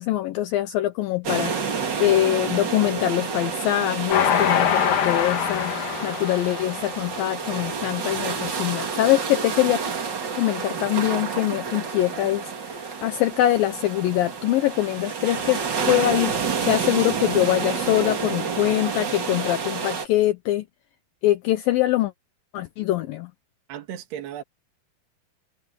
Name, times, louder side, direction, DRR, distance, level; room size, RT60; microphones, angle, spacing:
voice 1, 0.0-5.8 6.0-9.8 10.4-15.6 15.9-20.7 21.2-22.1 22.5-23.3, left 14 dB, 75° left, 2.4 m, -23 dB
sound 1, 1.2-20.1, right 5 dB, 40° right, 1.7 m, -29 dB
Train, 4.1-7.6 8.1-8.2 8.4-8.5, left 8 dB, 60° left, 3.3 m, -24 dB
voice 2, 23.7-24.4, right 10 dB, 75° right, 4.2 m, -35 dB
omnidirectional pair, 4.7 m